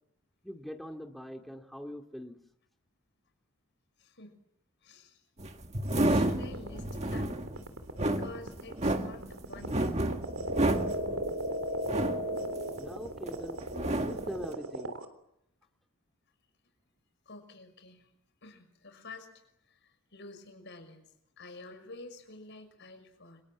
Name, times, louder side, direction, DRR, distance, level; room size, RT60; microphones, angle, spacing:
voice 1, 0.4-2.4 12.8-13.6 14.0-15.0, equal, ahead, 4 dB, 2.4 m, -42 dB
voice 2, 4.0-4.4 4.8-5.2 6.1-7.4 8.0-10.1 17.3-18.1 18.4-21.0 21.4-23.4, left 2 dB, 55° left, 7 dB, 6.0 m, -49 dB
sound 1, 5.4-13.3 13.6-14.4, right 1 dB, 30° right, 1.8 m, -31 dB
sound 2, 6.1-15.1, right 1 dB, 65° right, 3.7 m, -35 dB
30.0 x 26.0 x 7.4 m, 0.80 s
head